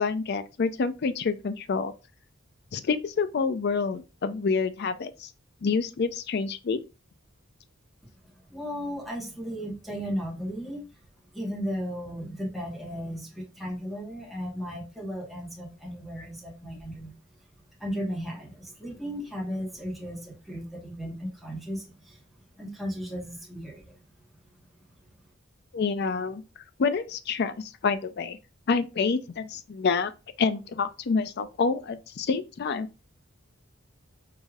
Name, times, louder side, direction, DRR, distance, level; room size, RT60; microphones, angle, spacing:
voice 1, 0.0-1.9 2.7-5.3 5.6-6.8 25.7-26.4 26.8-28.4 28.7-30.1 30.4-32.9, left 5 dB, 50° left, 0.4 m, -27 dB
voice 2, 8.5-10.9 11.3-17.1 17.8-22.2 22.5-24.0, equal, ahead, 1.2 m, -35 dB
4.8 x 2.6 x 2.3 m
head